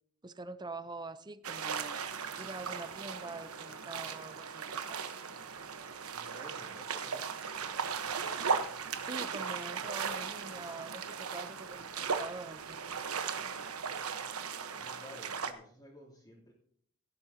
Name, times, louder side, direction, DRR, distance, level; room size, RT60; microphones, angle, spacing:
voice 1, 0.2-2.0 2.4-5.1 9.0-12.9, right 3 dB, 20° right, 13 dB, 0.6 m, -45 dB
sound 1, 1.4-15.5, right 6 dB, 90° right, 1.1 m, -37 dB
voice 2, 6.1-7.5 14.7-16.5, equal, 20° left, -7 dB, 2.9 m, -54 dB
17.5 x 11.0 x 2.8 m, 0.63 s
head